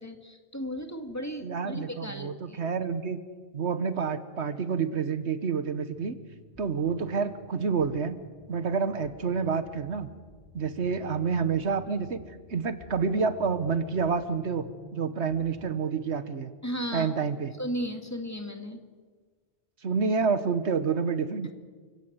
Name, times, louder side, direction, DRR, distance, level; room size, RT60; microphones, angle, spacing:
voice 1, 0.0-2.6 16.6-17.1 17.6-18.8, equal, 15° left, 5 dB, 2.1 m, -35 dB
voice 2, 1.4-3.2 3.5-6.1 6.6-8.2 8.5-10.1 10.5-12.2 12.5-14.7 14.9-16.5 16.9-17.5 19.8-21.5, right 5 dB, 75° right, 12 dB, 1.4 m, -28 dB
sound 1, 5.9-15.9, equal, 10° right, 2.8 m, -53 dB
29.5 x 16.5 x 8.1 m, 1.5 s
omnidirectional pair, 1.2 m